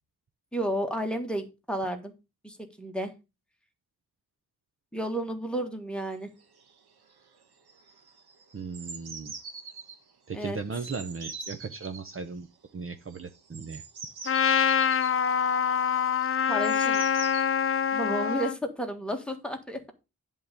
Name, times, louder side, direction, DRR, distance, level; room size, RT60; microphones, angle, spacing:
voice 1, 0.5-2.1 2.4-3.1 4.9-6.3 10.3-10.6 16.5-17.0 17.9-19.9, right 1 dB, 5° left, 1.5 m, -32 dB
sound 1, 6.1-6.2 6.4-6.8 7.1-7.4 7.7-10.0 10.7-12.0 13.1-17.4, right 5 dB, 85° right, 1.5 m, -43 dB
voice 2, 8.5-9.3 10.3-12.5 12.7-13.8, right 5 dB, 35° right, 0.7 m, -37 dB
Trumpet, 14.3-18.5, left 7 dB, 35° left, 0.4 m, -25 dB
10.5 x 3.7 x 6.7 m
wide cardioid pair, 160°, 37 cm